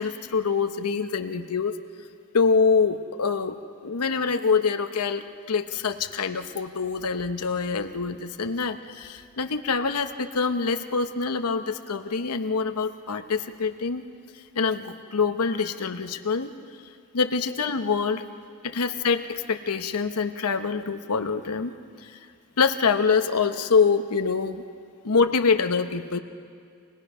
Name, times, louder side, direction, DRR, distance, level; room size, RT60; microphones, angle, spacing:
voice 1, 0.0-1.7 2.3-3.6 3.8-5.2 5.5-14.1 14.5-16.5 17.1-18.2 18.6-21.7 22.0-22.1 22.6-24.6 25.0-26.2, left 5 dB, 85° left, 8 dB, 0.9 m, -25 dB
27.5 x 19.0 x 5.5 m, 2.2 s
head